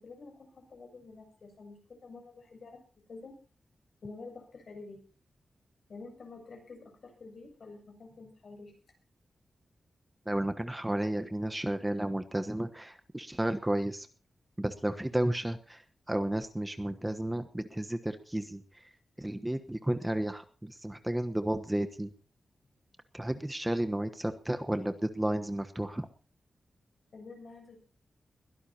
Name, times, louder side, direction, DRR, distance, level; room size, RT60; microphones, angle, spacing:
voice 1, 0.0-2.8 3.1-3.3 4.0-5.0 5.9-8.7 27.1-27.8, left 3 dB, 60° left, 4 dB, 7.3 m, -48 dB
voice 2, 10.3-14.1 14.6-18.9 19.2-22.1 23.1-26.1, right 1 dB, 10° right, 8 dB, 1.2 m, -32 dB
22.5 x 16.5 x 2.9 m, 0.38 s
wide cardioid pair, 135°, 0 cm